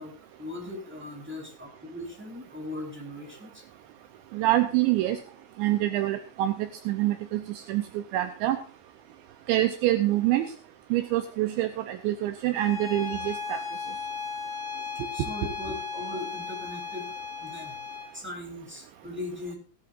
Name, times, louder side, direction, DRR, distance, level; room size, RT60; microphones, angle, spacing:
voice 1, 0.0-3.6 15.1-17.1 17.4-17.8 18.1-19.5, left 2 dB, 5° right, 0 dB, 2.4 m, -39 dB
voice 2, 4.3-5.2 5.6-6.5 6.9-7.4 7.7-7.8 8.1-8.6 9.5-10.5 10.9-13.6, right 14 dB, 80° right, 9 dB, 2.7 m, -25 dB
Bowed string instrument, 12.5-18.1, left 5 dB, 25° left, 4.5 m, -36 dB
17.0 x 13.0 x 2.6 m, 0.40 s
omnidirectional pair, 5.8 m